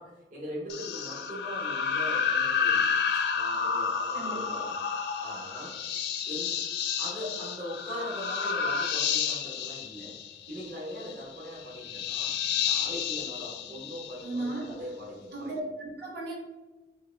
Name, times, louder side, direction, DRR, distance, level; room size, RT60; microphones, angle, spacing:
voice 1, 0.0-2.9 3.3-5.8 6.3-6.6 7.0-10.2 10.5-12.3 12.6-15.5, equal, 45° right, -7 dB, 1.0 m, -40 dB
sound 1, 0.7-14.6, left 6 dB, 65° left, 0.4 m, -30 dB
voice 2, 4.1-4.5 14.2-14.7 15.3-16.4, right 2 dB, 65° right, -4 dB, 1.2 m, -35 dB
4.7 x 2.2 x 3.3 m, 1.2 s
head